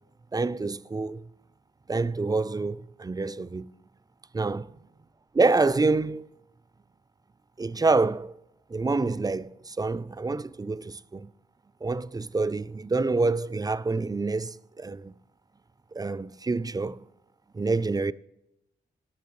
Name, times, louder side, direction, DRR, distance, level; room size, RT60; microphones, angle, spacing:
voice 1, 0.3-1.2 1.9-3.7 4.3-4.7 5.3-6.3 7.6-8.3 8.7-11.3 11.8-15.1 15.9-17.0 17.5-18.1, right 3 dB, 20° right, 0.4 m, -27 dB
13.0 x 11.5 x 3.1 m
supercardioid pair, 45°, 21 cm